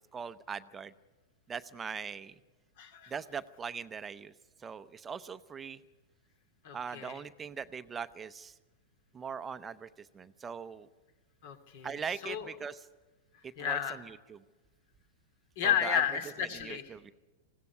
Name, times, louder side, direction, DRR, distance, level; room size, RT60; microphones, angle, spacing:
voice 1, 0.1-0.9 1.5-2.3 3.1-4.3 4.6-5.8 6.7-8.5 9.1-10.9 11.8-12.9 13.6-14.4 15.6-16.0 16.5-17.1, right 6 dB, 15° right, 11 dB, 0.6 m, -41 dB
voice 2, 2.8-3.1 6.6-7.2 11.4-11.9 12.2-12.5 13.6-14.0 15.6-16.9, left 8 dB, 60° left, 8 dB, 2.7 m, -32 dB
20.0 x 16.5 x 9.5 m, 1.2 s
hypercardioid pair, 135°, 0 cm